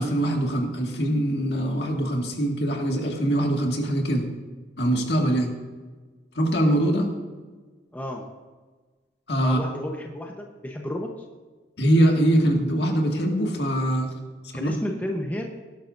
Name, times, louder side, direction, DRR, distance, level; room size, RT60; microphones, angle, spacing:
voice 1, 0.0-4.2 4.8-5.5 6.4-7.1 9.3-9.6 11.8-14.1 14.5-14.7, right 1 dB, 65° left, 0 dB, 2.1 m, -23 dB
voice 2, 7.9-8.2 9.4-11.1 14.5-15.5, left 1 dB, 10° left, 1 dB, 1.0 m, -31 dB
18.0 x 11.5 x 2.7 m, 1.3 s
head